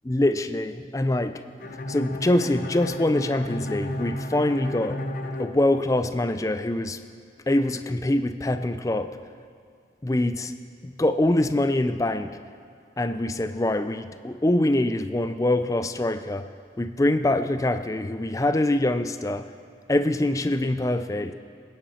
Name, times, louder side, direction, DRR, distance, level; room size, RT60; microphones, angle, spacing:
voice 1, 0.0-1.4 1.9-5.0 5.4-7.0 7.5-9.2 10.0-10.5 10.8-12.4 13.0-16.5 16.8-19.5 19.9-21.3, left 1 dB, 20° left, 10 dB, 0.4 m, -24 dB
Bowed string instrument, 1.6-6.4, left 1 dB, 45° left, 0.8 m, -33 dB
20.5 x 9.9 x 4.2 m, 2.4 s
head